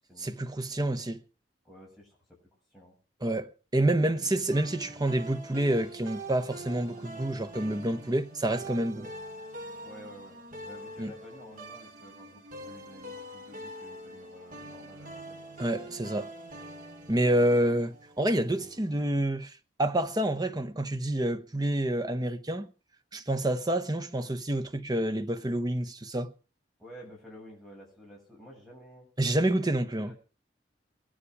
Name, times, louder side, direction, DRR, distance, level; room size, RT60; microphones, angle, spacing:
voice 1, 0.2-1.2 3.2-9.1 11.0-11.1 15.6-16.3 17.1-19.5 19.8-22.7 23.1-26.3 29.2-30.1, right 1 dB, 20° right, 1.1 m, -28 dB
voice 2, 1.6-2.4 2.7-2.9 3.8-4.5 4.8-5.0 8.9-9.1 9.8-10.4 10.6-15.4 26.8-29.1 29.4-30.2, equal, ahead, 7.6 m, -51 dB
sound 1, 4.5-19.2, right 1 dB, 50° right, 2.9 m, -44 dB
22.5 x 10.0 x 4.8 m
head